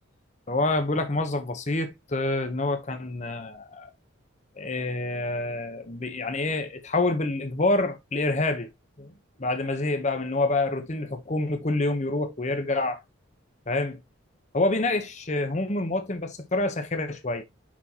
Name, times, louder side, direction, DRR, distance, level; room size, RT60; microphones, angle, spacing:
voice 1, 0.5-3.9 4.6-8.7 9.0-9.1 9.4-13.0 13.7-14.0 14.5-17.4, left 2 dB, 35° left, 0.9 m, -27 dB
6.1 x 5.8 x 2.8 m
head